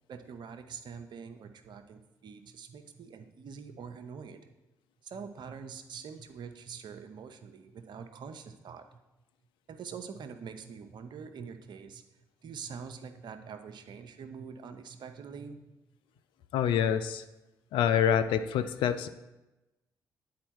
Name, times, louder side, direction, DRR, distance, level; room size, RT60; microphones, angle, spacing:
voice 1, 0.1-4.5 5.0-9.0 9.7-12.0 12.4-15.6, right 6 dB, 60° right, 8 dB, 0.7 m, -45 dB
voice 2, 16.5-17.2 17.7-19.1, left 9 dB, 70° left, 11 dB, 0.4 m, -26 dB
9.4 x 4.4 x 4.6 m, 1.0 s
hypercardioid pair, 45°, 9 cm